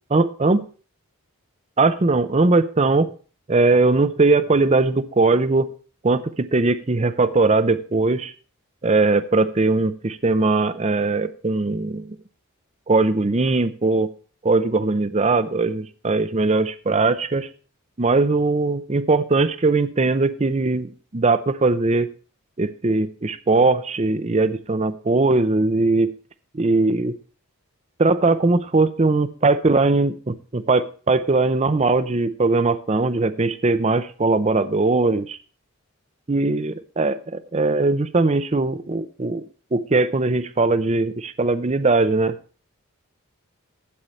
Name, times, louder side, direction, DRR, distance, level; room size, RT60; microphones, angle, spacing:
voice 1, 0.1-0.6 1.8-3.1 3.5-5.7 6.0-8.3 8.8-12.2 12.9-14.1 14.4-17.5 18.0-22.1 22.6-26.1 26.5-27.2 28.0-35.4 36.3-39.4 39.7-42.3, right 3 dB, 30° right, 13 dB, 0.6 m, -20 dB
13.0 x 8.6 x 3.2 m, 0.39 s
head